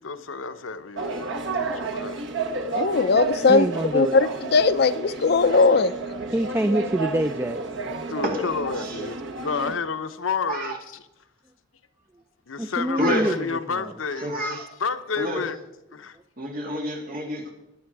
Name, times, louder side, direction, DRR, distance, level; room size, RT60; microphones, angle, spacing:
voice 1, 0.0-2.3 7.9-10.8 12.5-15.6 15.9-16.2, left 5 dB, 75° left, 0.8 m, -30 dB
sound 1, 1.0-9.7, right 3 dB, 65° right, 1.3 m, -31 dB
voice 2, 2.7-3.7 3.9-5.9, left 4 dB, 55° left, 0.5 m, -19 dB
voice 3, 3.5-4.2 6.3-7.6 12.6-13.9, right 1 dB, 10° right, 0.4 m, -25 dB
voice 4, 13.0-13.4 14.2-14.7 15.2-15.5 16.4-17.5, equal, 45° right, 2.7 m, -28 dB
20.0 x 8.9 x 4.7 m
head